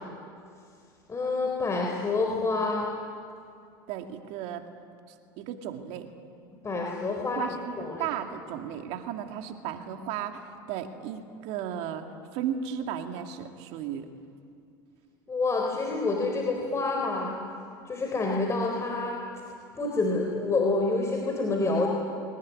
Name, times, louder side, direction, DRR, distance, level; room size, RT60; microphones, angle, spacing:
voice 1, 1.1-2.8 6.6-7.4 7.8-8.1 15.3-17.4 17.9-19.2 19.8-21.9, left 3 dB, 25° left, 0 dB, 4.1 m, -27 dB
voice 2, 3.9-4.6 5.4-6.1 7.2-12.0 12.3-14.1, right 9 dB, 60° right, 5 dB, 2.4 m, -35 dB
22.5 x 19.5 x 9.8 m, 2.4 s
hypercardioid pair, 90°, 12 cm